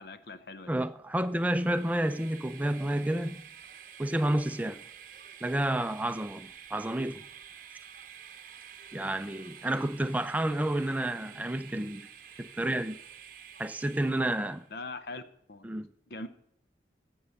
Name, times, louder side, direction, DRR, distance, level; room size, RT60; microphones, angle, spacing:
voice 1, 0.0-0.7 14.7-15.2 15.5-15.7 16.1-16.3, left 3 dB, 60° left, 0.7 m, -41 dB
voice 2, 0.7-3.4 4.0-4.8 5.4-7.2 8.9-12.1 12.4-13.0 13.6-14.7 15.6-15.9, right 1 dB, 10° right, 0.4 m, -30 dB
Train, 1.2-14.7, right 8 dB, 50° right, 0.9 m, -49 dB
15.5 x 5.5 x 6.4 m
head